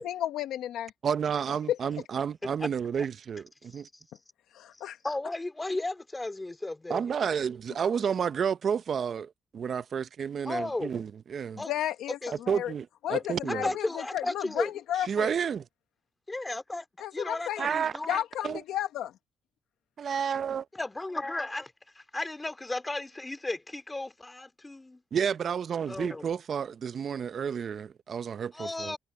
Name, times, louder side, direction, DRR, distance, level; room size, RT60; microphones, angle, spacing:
voice 1, 0.0-0.9 1.7-1.8 4.5-5.0 11.7-12.7 13.0-15.3 17.0-17.7 18.1-19.1, left 12 dB, 85° left, 1.0 m, -33 dB
voice 2, 1.0-3.9 6.9-11.6 12.5-13.7 15.0-15.6 17.6-18.2 18.4-18.6 20.0-20.7 25.1-28.9, right 7 dB, 50° right, 0.7 m, -31 dB
voice 3, 5.0-7.1 10.5-10.9 11.6-11.7 12.2-12.3 13.6-14.7 16.3-18.2 20.7-25.0 25.9-26.3 28.5-29.0, left 2 dB, 15° left, 2.4 m, -34 dB
cardioid pair, 90°, 0 cm